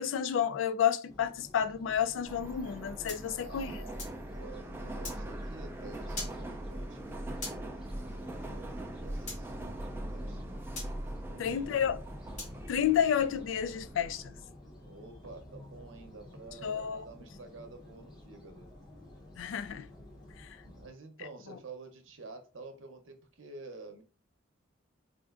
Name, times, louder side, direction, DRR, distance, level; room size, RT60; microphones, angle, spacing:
voice 1, 0.0-3.7 11.4-12.0 12.7-14.3 16.6-17.1 19.4-19.9 20.4-20.5, left 8 dB, 75° left, 0.3 m, -30 dB
sound 1, 1.1-20.9, left 1 dB, 20° left, 0.7 m, -52 dB
Subway metro underground, 2.3-14.3, right 1 dB, 10° right, 0.3 m, -41 dB
sound 2, 3.1-4.2 5.0-5.2 6.2-6.4 7.4-7.6 9.3-9.4 10.8-10.9 12.4-12.6, left 2 dB, 35° left, 1.3 m, -41 dB
voice 2, 3.3-10.7 11.3-11.9 14.8-18.7 20.6-24.0, right 3 dB, 80° right, 0.7 m, -50 dB
4.2 x 2.5 x 2.4 m
head